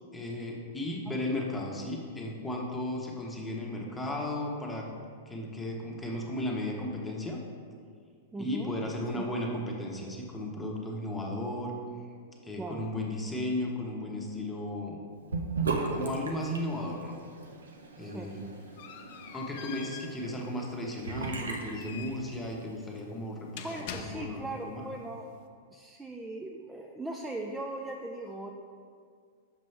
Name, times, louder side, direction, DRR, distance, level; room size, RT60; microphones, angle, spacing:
voice 1, 0.1-4.9 5.3-7.4 8.4-11.7 12.4-15.0 15.9-17.2 18.0-18.4 19.3-24.8, left 1 dB, 10° left, -1 dB, 1.1 m, -35 dB
voice 2, 8.3-8.7 9.1-9.3 12.6-12.8 18.0-18.3 23.6-25.3 25.7-28.5, right 2 dB, 10° right, 1 dB, 0.4 m, -39 dB
Sink (filling or washing) / Bathtub (filling or washing), 15.3-22.6, right 4 dB, 90° right, 0.7 m, -37 dB
sound 1, 18.0-24.6, left 8 dB, 55° left, 0.5 m, -46 dB
6.7 x 5.2 x 3.3 m, 2.1 s
hypercardioid pair, 115°, 0 cm